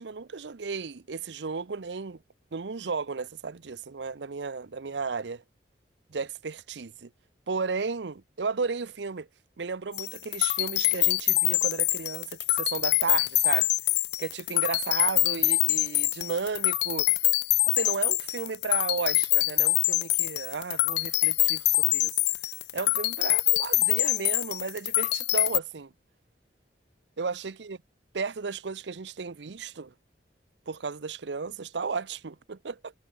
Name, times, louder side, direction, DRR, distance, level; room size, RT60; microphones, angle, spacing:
voice 1, 0.0-2.2 2.5-5.4 6.1-7.1 7.5-9.3 9.6-13.7 14.2-17.1 17.7-22.1 22.7-25.9 27.2-27.8 28.1-29.9 30.7-32.9, right 5 dB, 90° right, 0.7 m, -34 dB
sound 1, 9.9-25.6, left 19 dB, 70° left, 0.4 m, -25 dB
head